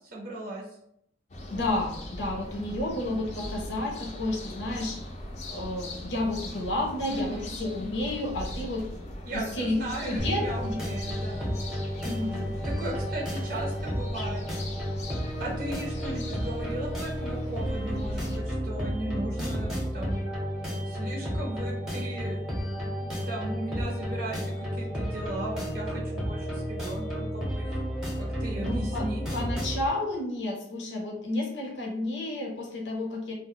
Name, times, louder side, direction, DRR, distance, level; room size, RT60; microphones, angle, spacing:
voice 1, 0.1-0.6 7.1-7.5 9.3-11.6 12.8-14.4 15.4-20.2 20.9-22.4 23.0-27.7 28.2-29.2, right 1 dB, 55° right, -3 dB, 0.6 m, -37 dB
sound 1, 1.3-18.4, left 1 dB, 40° left, 0.5 m, -40 dB
voice 2, 1.5-5.0 5.5-8.8 9.3-9.8 10.1-10.8 12.0-12.5 28.6-33.3, left 1 dB, 80° left, -1 dB, 0.7 m, -31 dB
sound 2, 10.2-29.9, equal, 5° right, 0.8 m, -32 dB
2.1 x 2.0 x 3.7 m, 0.74 s
head